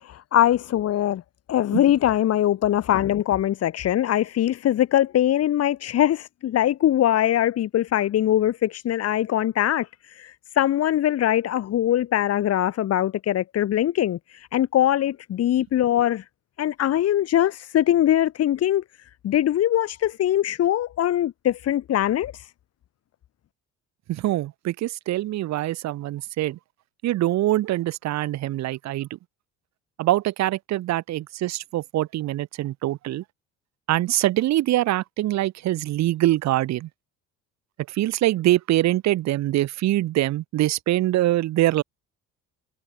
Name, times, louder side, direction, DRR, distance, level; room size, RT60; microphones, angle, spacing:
voice 1, 0.0-1.2 1.5-16.2 16.6-18.8 19.2-22.5, left 12 dB, 50° left, 2.1 m, -22 dB
voice 2, 24.1-26.6 27.0-29.1 30.0-33.2 33.9-36.9 37.9-41.8, right 15 dB, 60° right, 1.4 m, -24 dB
cardioid pair, 120°, 31 cm